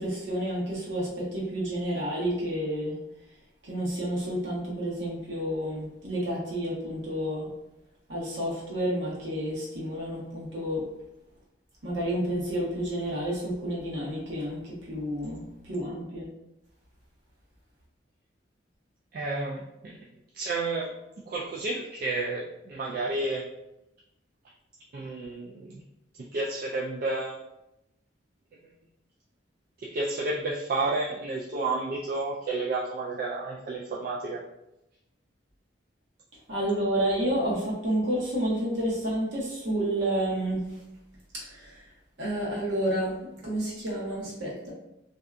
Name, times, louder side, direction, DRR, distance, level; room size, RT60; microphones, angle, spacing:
voice 1, 0.0-3.0 3.6-7.5 8.1-10.8 11.8-16.3 36.5-40.7 41.3-41.8 42.2-44.7, right 1 dB, 70° right, -5 dB, 1.0 m, -30 dB
voice 2, 19.1-20.0 20.3-21.0 21.3-23.5 24.9-25.8 26.2-27.4 29.8-34.4, right 2 dB, 50° right, -4 dB, 0.3 m, -31 dB
2.6 x 2.2 x 2.4 m, 0.88 s
head